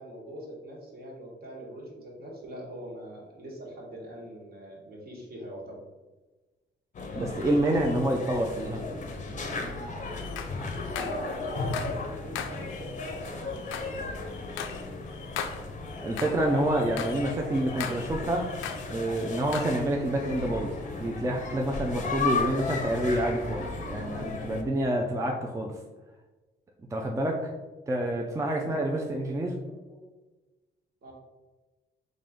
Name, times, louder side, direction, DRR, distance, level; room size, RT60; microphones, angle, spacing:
voice 1, 0.0-5.8 10.6-14.1 28.3-28.9 29.3-30.0 31.0-31.1, equal, 50° right, -2 dB, 1.3 m, -43 dB
sound 1, 6.9-24.6, left 3 dB, 40° left, 0.6 m, -35 dB
voice 2, 7.1-8.8 16.0-18.4 18.9-25.7 26.9-27.4 27.9-29.5, right 1 dB, 15° right, 1 dB, 0.4 m, -28 dB
sound 2, 10.0-12.1 12.3-16.5 16.7-18.9 19.2-19.8, left 7 dB, 85° left, 0.4 m, -39 dB
3.7 x 2.5 x 3.5 m, 1.2 s
cardioid pair, 90°, 20 cm